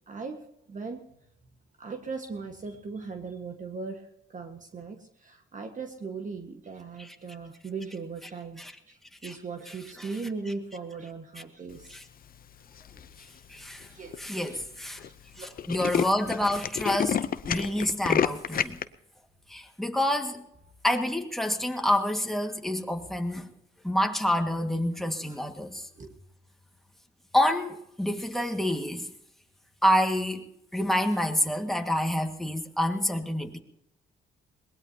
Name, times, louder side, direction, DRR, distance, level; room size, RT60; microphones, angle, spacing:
voice 1, 0.1-1.1 1.8-8.6 8.9-12.0 13.9-14.6 15.0-15.5 25.3-25.4 25.9-26.1, right 4 dB, 40° right, 4 dB, 1.6 m, -39 dB
Tools, 12.8-13.2 13.8-13.9 14.1-14.2 14.5-14.7 15.0-15.1 15.4-18.8, left 8 dB, 45° left, 0.7 m, -28 dB
voice 2, 13.5-13.9 14.2-15.0 15.4-17.2 17.5-18.8 19.5-20.4 20.8-23.5 23.8-25.9 27.3-29.1 29.8-30.4 30.7-33.6, left 1 dB, ahead, 3 dB, 1.9 m, -27 dB
21.5 x 19.5 x 2.9 m, 0.78 s
cardioid pair, 90°, 20 cm